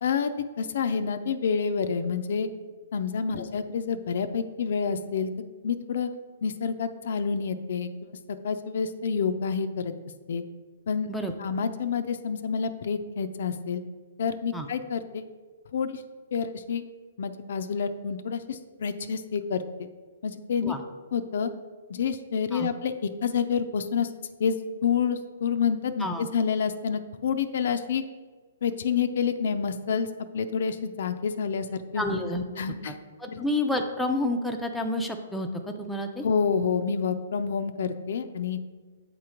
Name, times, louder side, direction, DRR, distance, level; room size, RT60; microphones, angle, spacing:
voice 1, 0.0-0.3 0.6-2.5 2.9-5.3 5.6-6.1 6.4-8.1 8.4-9.9 10.3-10.4 10.9-11.1 11.4-13.8 14.2-15.3 15.7-16.0 16.3-16.8 17.2-19.9 20.2-20.7 21.1-21.5 21.9-22.9 23.2-24.1 24.4-24.6 24.8-28.0 28.6-30.1 30.3-32.2 32.6-33.0 33.3-33.4 36.2-38.6, left 6 dB, 65° left, 9 dB, 0.4 m, -28 dB
voice 2, 32.0-32.4 32.8-32.9 33.2-35.5 35.8-36.2, left 1 dB, 5° left, 2 dB, 0.4 m, -29 dB
8.0 x 3.0 x 4.9 m, 1.4 s
hypercardioid pair, 145°, 0 cm